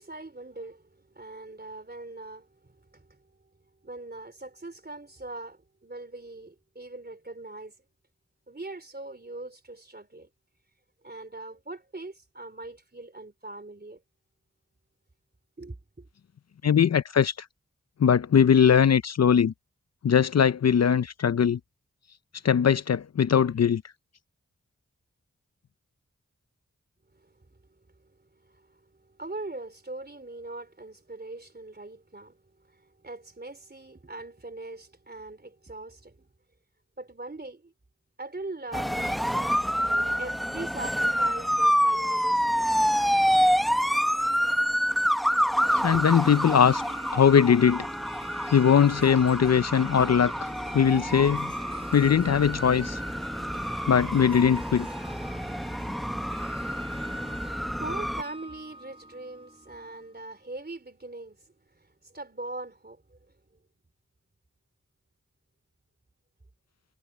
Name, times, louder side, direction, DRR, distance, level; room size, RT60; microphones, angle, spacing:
voice 1, 0.0-3.5 3.8-7.8 8.5-10.3 11.0-14.0 15.6-16.1 27.1-36.3 37.0-37.7 38.2-42.7 45.9-46.2 57.3-63.6, right 2 dB, 35° right, 3.6 m, -42 dB
voice 2, 16.6-17.3 18.0-19.5 20.0-21.6 22.4-23.8 45.8-46.8 47.1-47.9 48.5-50.3 50.7-51.5 51.9-53.0 53.9-54.9, left 7 dB, 60° left, 0.5 m, -20 dB
sound 1, 38.7-58.2, equal, ahead, 1.1 m, -27 dB
Harp, 45.7-60.2, right 1 dB, 20° right, 6.3 m, -45 dB
wide cardioid pair, 60°, 29 cm